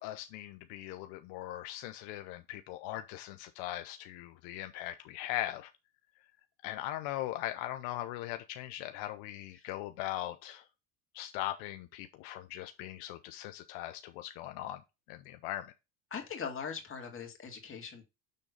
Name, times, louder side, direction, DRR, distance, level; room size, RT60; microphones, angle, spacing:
voice 1, 0.0-5.7 6.6-10.6 11.1-14.8 15.1-15.7, left 14 dB, 75° left, 0.7 m, -40 dB
voice 2, 16.1-18.0, left 6 dB, 30° left, 2.2 m, -41 dB
6.8 x 3.7 x 5.2 m
supercardioid pair, 110°, 43 cm